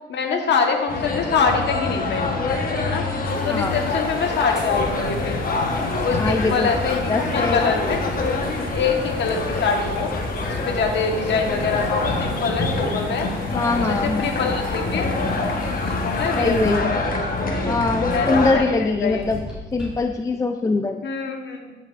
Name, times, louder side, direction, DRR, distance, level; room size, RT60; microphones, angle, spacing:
voice 1, 0.1-2.4 2.8-3.1 3.4-5.4 6.0-8.3 8.7-10.1 10.5-13.3 13.8-15.1 15.8-17.2 18.1-19.3 21.0-21.8, left 5 dB, 65° left, 3 dB, 1.3 m, -24 dB
sound 1, 0.9-18.5, left 3 dB, 45° left, 1.1 m, -25 dB
sound 2, 3.3-16.8, left 2 dB, 80° left, 2.2 m, -41 dB
voice 2, 3.5-3.8 6.2-6.7 7.1-7.7 13.5-14.4 16.3-16.9 17.6-19.4 19.7-21.0, left 3 dB, 15° left, 6 dB, 0.3 m, -23 dB
sound 3, 4.6-20.0, equal, 5° right, 2.6 m, -36 dB
12.5 x 5.9 x 2.5 m, 1.2 s
cardioid pair, 90°, 20 cm